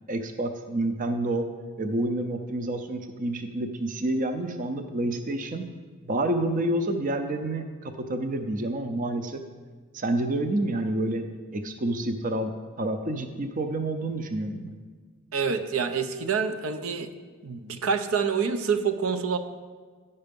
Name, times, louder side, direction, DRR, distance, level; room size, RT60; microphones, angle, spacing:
voice 1, 0.0-1.5 1.8-5.6 6.1-9.4 9.9-11.2 11.5-14.7, right 1 dB, 40° right, 7 dB, 0.5 m, -28 dB
voice 2, 15.3-17.1 17.4-19.4, right 6 dB, 80° right, 9 dB, 0.6 m, -27 dB
10.5 x 5.5 x 5.2 m, 1.6 s
head